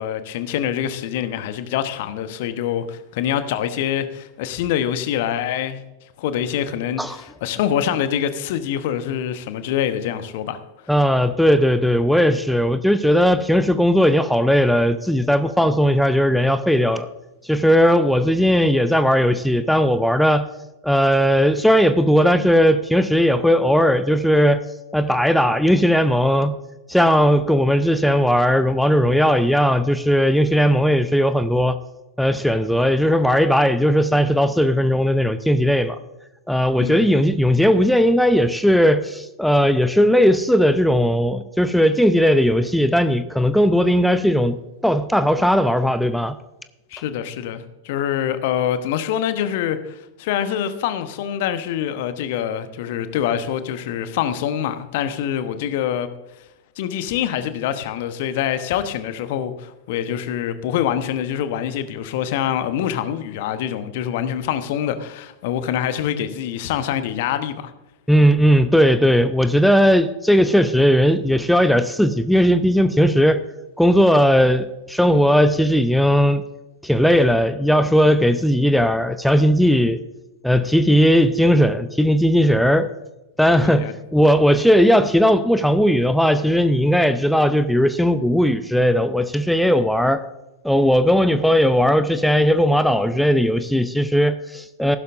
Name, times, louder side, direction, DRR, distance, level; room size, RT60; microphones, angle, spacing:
voice 1, 0.0-5.8 6.2-10.6 36.8-37.2 46.9-56.1 56.4-56.5 56.8-67.7 83.6-83.9, left 10 dB, 50° left, 1.0 m, -25 dB
voice 2, 10.9-17.1 17.4-20.4 20.8-24.6 24.9-26.5 26.9-31.8 32.2-36.0 36.5-44.6 44.8-46.3 68.1-73.4 73.8-76.4 76.8-80.0 80.4-82.9 83.4-90.2 90.6-95.0, equal, ahead, 0.6 m, -17 dB
15.0 x 12.0 x 2.6 m
figure-of-eight pair, 90°, 0 cm